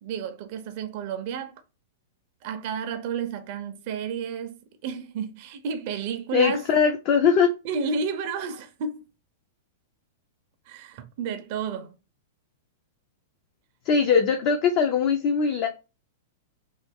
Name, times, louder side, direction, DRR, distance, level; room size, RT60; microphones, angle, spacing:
voice 1, 0.0-1.6 2.4-6.7 7.6-9.0 10.7-12.0 14.0-14.2, right 6 dB, 40° right, 0.5 m, -31 dB
voice 2, 6.3-7.5 13.9-15.7, left 6 dB, 35° left, 0.4 m, -21 dB
3.1 x 2.3 x 3.4 m
supercardioid pair, 170°, 0 cm